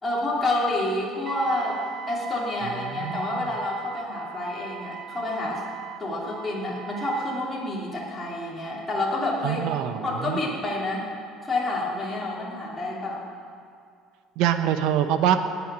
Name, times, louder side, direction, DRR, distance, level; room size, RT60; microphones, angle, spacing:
voice 1, 0.0-1.8 2.1-5.6 6.0-9.6 10.0-11.0 11.4-13.2, left 2 dB, 10° left, -6 dB, 3.0 m, -28 dB
Wind instrument woodwind instrument, 1.3-7.5, right 10 dB, 30° right, 0.4 m, -40 dB
voice 2, 2.9-3.5 9.4-10.4 14.4-15.3, right 10 dB, 60° right, 9 dB, 0.9 m, -24 dB
19.5 x 9.2 x 6.2 m, 2.2 s
cardioid pair, 170°, 0 cm